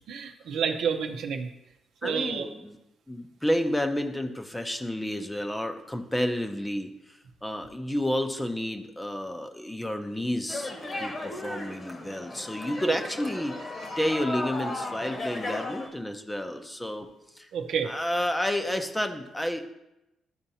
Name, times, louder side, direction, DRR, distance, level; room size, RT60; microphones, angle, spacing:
voice 1, 0.1-1.5 2.0-2.5 12.9-13.0 17.5-17.9, right 7 dB, 75° right, 4 dB, 0.7 m, -29 dB
voice 2, 2.0-2.8 3.1-10.7 11.0-13.7 14.0-17.1 17.4-17.5 17.8-19.7, left 1 dB, 10° left, 6 dB, 0.7 m, -30 dB
sound 1, 10.5-15.9, left 2 dB, 35° left, 1.2 m, -35 dB
12.0 x 4.4 x 2.8 m, 0.91 s
cardioid pair, 90°, 0 cm